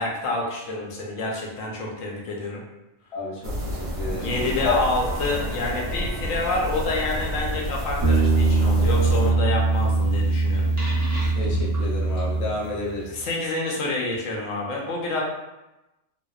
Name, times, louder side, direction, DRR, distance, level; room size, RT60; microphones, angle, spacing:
voice 1, 0.0-2.6 4.1-10.7 13.1-15.2, left 2 dB, 85° left, -1 dB, 1.0 m, -28 dB
voice 2, 3.1-4.8 5.3-5.5 11.3-13.3, left 3 dB, 55° left, -4 dB, 0.4 m, -31 dB
sound 1, 3.4-9.3, equal, 65° right, 0.8 m, -30 dB
Bowed string instrument, 4.7-8.1, right 1 dB, 80° right, 0.3 m, -45 dB
sound 2, 8.0-12.9, right 3 dB, 20° right, 0.7 m, -21 dB
2.7 x 2.0 x 2.3 m, 0.97 s
omnidirectional pair, 1.3 m